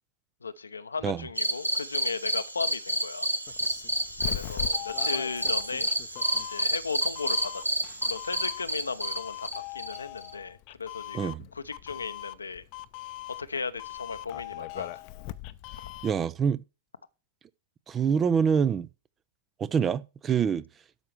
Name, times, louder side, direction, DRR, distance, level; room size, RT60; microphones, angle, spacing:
voice 1, 0.4-3.3 4.3-5.9 6.5-12.6 13.4-15.0, left 4 dB, 80° left, 0.8 m, -36 dB
sound 1, 1.4-10.3, right 1 dB, 90° right, 1.1 m, -30 dB
Doorbell, 3.5-16.3, left 17 dB, 45° left, 0.7 m, -40 dB
voice 2, 16.0-16.6 17.9-18.9 19.6-20.6, right 7 dB, 20° right, 0.6 m, -25 dB
12.5 x 5.6 x 4.7 m
figure-of-eight pair, 100°, 0 cm